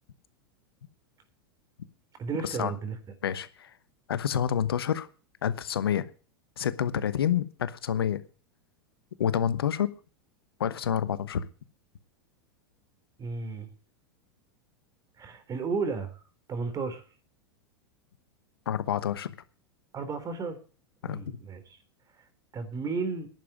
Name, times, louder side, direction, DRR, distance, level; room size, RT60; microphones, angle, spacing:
voice 1, 2.2-3.0 13.2-13.7 15.2-16.2 16.5-17.0 19.9-20.6 21.0-21.8 22.1-22.3 22.5-23.3, right 4 dB, 30° right, 3.6 m, -33 dB
voice 2, 3.2-3.7 4.1-5.1 5.4-6.1 6.6-8.2 9.2-10.0 10.6-11.4 18.7-19.3 21.0-21.2, left 9 dB, 80° left, 1.1 m, -28 dB
11.0 x 7.3 x 9.2 m
hypercardioid pair, 95°, 12 cm